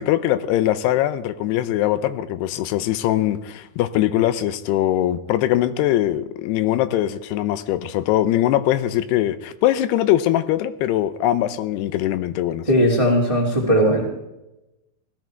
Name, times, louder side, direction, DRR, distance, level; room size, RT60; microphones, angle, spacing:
voice 1, 0.0-12.7, left 13 dB, 85° left, 2.8 m, -21 dB
voice 2, 12.7-14.0, equal, 15° right, 1.2 m, -18 dB
17.0 x 13.0 x 4.6 m
omnidirectional pair, 4.7 m